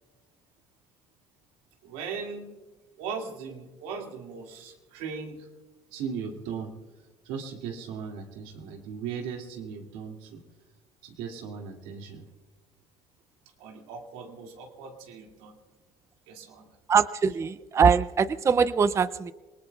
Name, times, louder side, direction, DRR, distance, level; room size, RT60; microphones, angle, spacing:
voice 1, 1.8-2.6 3.0-5.5 5.9-6.7 7.2-10.4 11.0-12.3 13.6-15.6 16.3-16.8, right 6 dB, 90° right, 2 dB, 2.3 m, -38 dB
voice 2, 16.9-19.3, right 6 dB, 20° right, 15 dB, 0.4 m, -22 dB
27.5 x 19.0 x 2.3 m, 1.2 s
cardioid pair, 115°, 13 cm